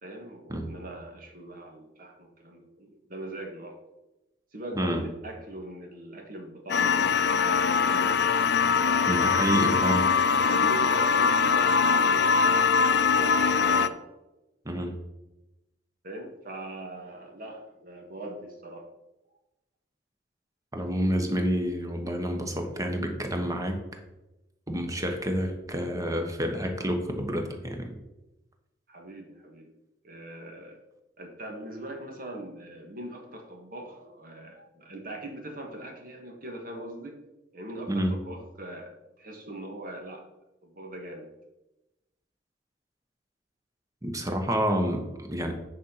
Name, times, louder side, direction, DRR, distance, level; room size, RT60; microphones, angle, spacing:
voice 1, 0.0-3.8 4.5-8.2 8.8-9.5 10.3-12.6 13.2-13.9 16.0-18.9 28.9-29.7 30.0-30.8 31.2-37.2 37.5-40.2 40.6-41.3, right 1 dB, 50° right, 2 dB, 1.6 m, -41 dB
sound 1, 6.7-13.9, left 5 dB, 65° left, 0.5 m, -22 dB
voice 2, 9.1-10.1 14.6-14.9 20.7-23.8 24.7-27.9 37.9-38.1 44.0-45.5, equal, 20° right, 4 dB, 1.2 m, -28 dB
9.5 x 4.3 x 5.7 m, 0.99 s
head